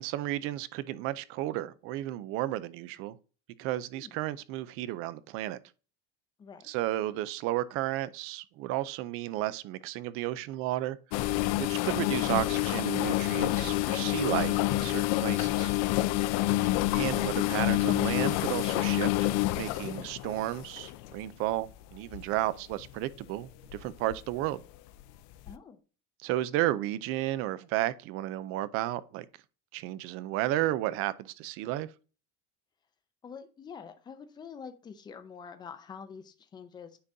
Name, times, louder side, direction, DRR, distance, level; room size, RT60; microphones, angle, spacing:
voice 1, 0.0-3.2 3.6-5.6 6.6-11.0 11.6-15.7 16.9-24.6 26.2-29.3 29.7-31.9, right 15 dB, 50° right, 0.5 m, -33 dB
voice 2, 6.4-6.7 25.5-25.8 33.2-37.0, left 6 dB, 15° left, 0.5 m, -46 dB
sound 1, 11.1-21.3 21.9-22.2 22.7-22.9 23.7-24.1 24.4-24.5 25.5-25.6, left 17 dB, 65° left, 0.5 m, -28 dB
9.6 x 3.8 x 2.7 m
cardioid pair, 180°, 29 cm